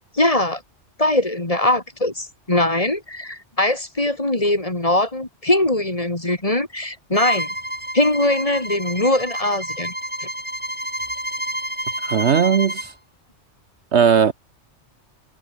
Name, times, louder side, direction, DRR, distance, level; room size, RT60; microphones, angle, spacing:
voice 1, 0.1-0.6 1.0-7.5 7.9-9.9 10.2-10.3, left 1 dB, 30° left, 3.0 m, -21 dB
Bowed string instrument, 7.1-12.9, equal, 5° right, 3.4 m, -29 dB
voice 2, 12.0-12.9 13.9-14.3, right 7 dB, 65° right, 1.3 m, -17 dB
omnidirectional pair, 1.3 m